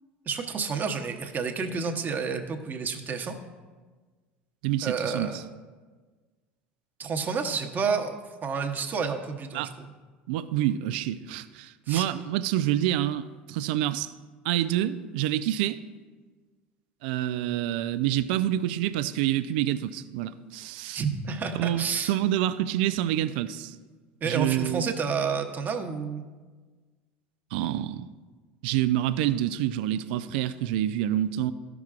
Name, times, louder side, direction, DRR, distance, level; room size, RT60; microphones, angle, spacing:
voice 1, 0.3-3.4 4.8-5.4 7.0-8.1 8.4-9.9 11.9-12.0 20.9-22.1 24.2-26.2, right 5 dB, 35° right, 1.0 m, -30 dB
voice 2, 4.6-5.4 9.5-9.7 10.3-14.1 14.4-15.8 17.0-21.0 21.5-23.8 24.2-24.9 27.5-28.1 28.6-31.5, right 12 dB, 70° right, 0.4 m, -27 dB
13.0 x 5.9 x 2.5 m
hypercardioid pair, 80°, 5 cm